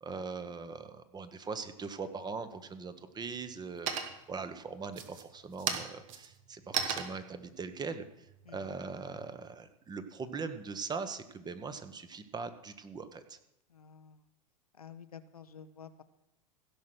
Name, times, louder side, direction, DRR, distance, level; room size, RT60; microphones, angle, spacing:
voice 1, 0.0-8.0 8.5-13.4, right 4 dB, 20° right, 11 dB, 1.2 m, -41 dB
sound 1, 2.2-2.8 3.2-3.6 3.9-4.4 4.9-9.3, right 7 dB, 65° right, 1.5 m, -37 dB
voice 2, 8.4-8.8 13.7-14.3 14.7-16.0, left 7 dB, 90° left, 10 dB, 0.8 m, -51 dB
16.0 x 6.3 x 6.2 m, 0.84 s
hypercardioid pair, 90°, 19 cm